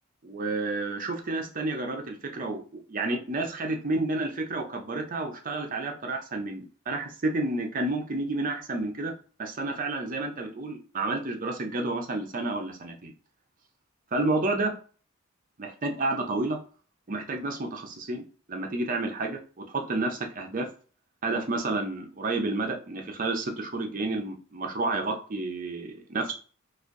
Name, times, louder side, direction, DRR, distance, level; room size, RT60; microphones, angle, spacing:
voice 1, 0.2-9.1 9.4-13.1 14.1-14.8 15.6-16.6 17.1-18.2 18.5-20.7 21.2-26.3, right 2 dB, 40° right, 3 dB, 0.6 m, -30 dB
4.2 x 2.5 x 2.5 m, 0.40 s
head